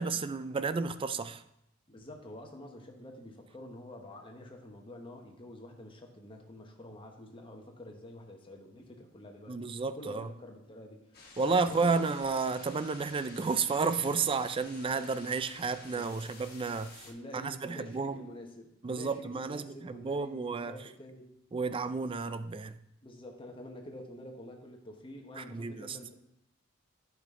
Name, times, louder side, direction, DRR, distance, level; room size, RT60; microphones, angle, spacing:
voice 1, 0.0-1.4 9.5-10.3 11.4-16.9 17.3-18.2 18.8-20.7 21.5-22.8 25.4-26.0, right 4 dB, 25° right, 0.3 m, -32 dB
voice 2, 1.9-12.2 14.7-14.9 15.9-16.2 17.0-21.3 23.0-26.1, left 1 dB, 25° left, 1.1 m, -48 dB
sound 1, 11.1-17.1, left 3 dB, 50° left, 1.6 m, -52 dB
10.5 x 5.8 x 3.7 m
head